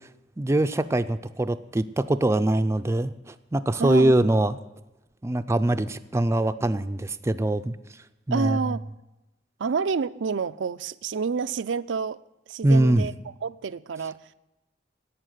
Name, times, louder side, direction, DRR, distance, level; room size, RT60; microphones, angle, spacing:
voice 1, 0.4-4.6 5.2-7.8 8.3-8.6 12.6-13.1, right 1 dB, 15° right, 0.4 m, -23 dB
voice 2, 3.8-4.3 8.3-8.8 9.6-12.2 12.5-13.1 13.4-14.2, right 5 dB, 85° right, 0.5 m, -28 dB
11.5 x 8.6 x 9.1 m
head